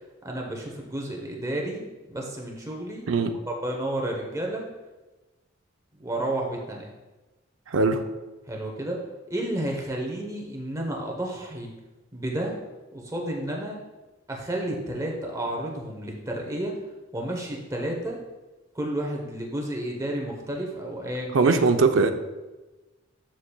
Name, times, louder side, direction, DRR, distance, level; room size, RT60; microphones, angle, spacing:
voice 1, 0.2-3.1 3.5-4.7 6.0-6.9 8.5-9.0 9.3-11.7 12.1-12.5 12.9-13.8 14.3-16.8 17.1-18.2 18.7-21.6, right 1 dB, 15° right, 0 dB, 0.9 m, -31 dB
voice 2, 7.7-8.0 21.3-22.1, right 4 dB, 75° right, 7 dB, 0.6 m, -20 dB
11.5 x 5.1 x 2.3 m, 1.2 s
head